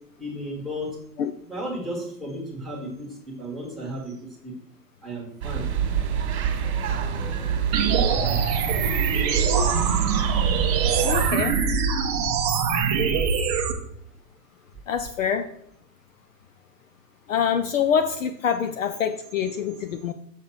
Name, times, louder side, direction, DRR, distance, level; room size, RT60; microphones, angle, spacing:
voice 1, 0.2-0.9 1.5-4.5 5.0-5.7 7.9-8.4 11.5-11.7 12.3-12.6 13.0-13.2 19.7-19.8, right 1 dB, ahead, -2 dB, 1.3 m, -35 dB
sound 1, 5.4-11.3, right 8 dB, 40° right, 1.6 m, -26 dB
sound 2, 7.7-13.7, right 6 dB, 25° right, 0.7 m, -23 dB
voice 2, 11.0-11.5 13.1-13.2 14.9-15.5 17.3-20.1, left 7 dB, 55° left, 9 dB, 0.5 m, -25 dB
6.4 x 3.9 x 5.9 m, 0.70 s
hypercardioid pair, 140°, 49 cm